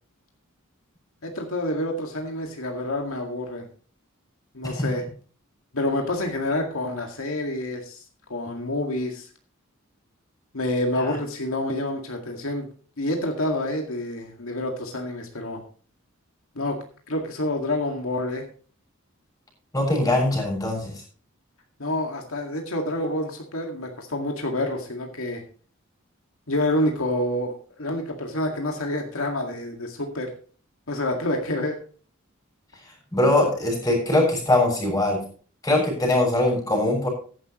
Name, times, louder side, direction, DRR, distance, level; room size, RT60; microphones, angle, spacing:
voice 1, 1.2-3.7 4.5-5.0 5.7-8.0 8.3-9.3 10.5-12.7 13.0-15.6 16.6-16.8 17.1-18.4 21.8-25.4 26.5-30.3 30.9-31.8, left 1 dB, 80° left, 2 dB, 2.0 m, -28 dB
voice 2, 19.7-21.0 33.1-35.2 35.6-37.1, left 1 dB, 15° left, 0 dB, 6.6 m, -22 dB
14.5 x 11.0 x 3.1 m, 0.41 s
head